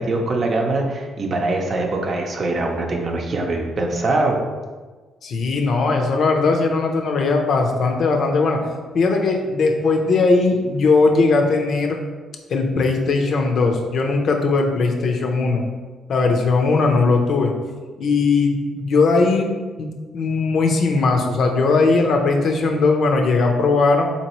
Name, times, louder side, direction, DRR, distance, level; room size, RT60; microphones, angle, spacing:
voice 1, 0.0-4.4, right 2 dB, 45° right, 1 dB, 0.6 m, -22 dB
voice 2, 5.2-8.7 8.9-12.0 12.5-15.7 16.1-17.5 18.0-19.5 19.8-19.9 20.1-24.1, left 3 dB, 60° left, 3 dB, 0.5 m, -19 dB
4.0 x 2.9 x 3.0 m, 1.4 s
cardioid pair, 90°, 0 cm